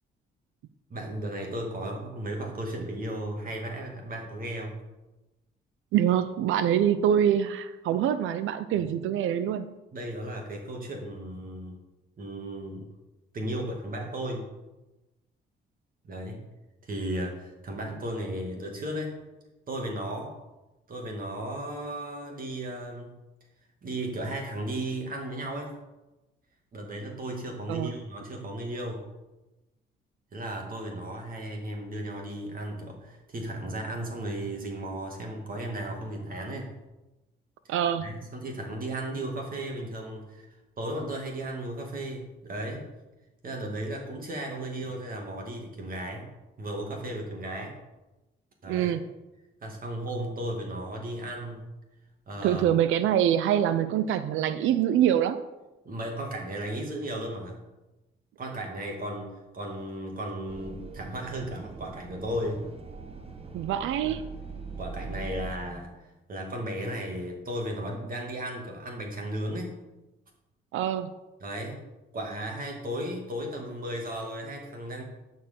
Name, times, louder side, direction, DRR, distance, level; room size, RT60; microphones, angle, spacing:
voice 1, 0.9-4.8 9.9-11.8 12.2-12.9 13.3-14.5 16.0-16.5 16.8-19.2 19.7-20.3 20.9-23.2 23.8-25.7 26.7-29.0 30.3-36.7 37.6-37.7 38.0-40.5 40.8-42.9 43.4-46.3 46.6-47.8 48.6-48.9 49.6-51.6 52.3-52.7 55.8-57.6 58.4-62.7 64.1-64.2 64.8-65.9 66.3-69.7 71.4-71.8 72.1-75.0, right 1 dB, 45° right, 1 dB, 2.2 m, -35 dB
voice 2, 5.9-9.7 27.7-27.9 37.7-38.2 48.7-49.1 52.4-55.4 63.5-64.3 70.7-71.1, right 10 dB, 85° right, 12 dB, 0.5 m, -25 dB
sound 1, 60.5-65.5, right 4 dB, 30° right, 1.4 m, -41 dB
11.5 x 4.6 x 6.9 m, 1.0 s
cardioid pair, 90°, 20 cm